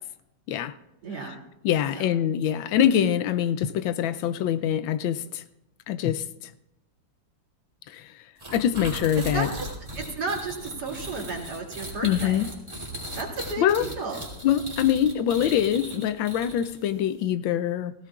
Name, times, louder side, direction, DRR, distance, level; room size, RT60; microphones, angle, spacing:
voice 1, 1.0-1.4 1.9-2.1 9.2-9.7 9.9-12.4 13.1-14.2, right 3 dB, 55° right, -2 dB, 3.3 m, -33 dB
voice 2, 1.6-5.4 5.9-6.5 7.9-8.2 8.5-9.5 12.0-12.5 13.6-13.9 14.4-17.9, left 10 dB, 85° left, 13 dB, 1.4 m, -24 dB
sound 1, 8.4-16.9, equal, 15° right, 2.9 m, -38 dB
18.0 x 16.5 x 2.4 m, 0.85 s
omnidirectional pair, 2.1 m